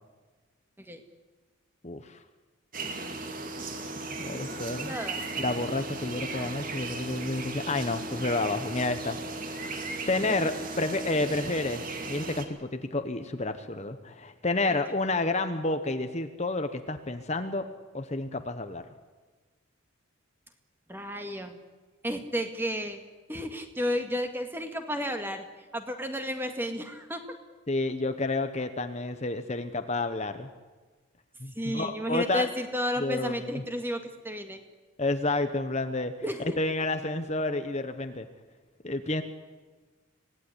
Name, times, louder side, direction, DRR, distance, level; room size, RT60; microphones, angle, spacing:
voice 1, 1.8-2.2 4.2-4.9 5.4-9.2 9.5-9.7 10.1-17.7 17.9-18.8 27.7-30.5 31.4-32.5 33.0-33.6 35.0-36.1 36.6-38.3 38.8-39.2, left 2 dB, 30° left, 8 dB, 1.1 m, -30 dB
sound 1, 2.7-12.5, right 3 dB, 40° right, 2.4 m, -36 dB
voice 2, 4.8-5.2 14.7-14.8 20.9-21.5 22.0-23.0 23.3-25.5 25.7-27.2 31.6-34.6 36.2-36.6, equal, 10° right, 6 dB, 2.0 m, -32 dB
26.0 x 18.0 x 9.9 m, 1.3 s
head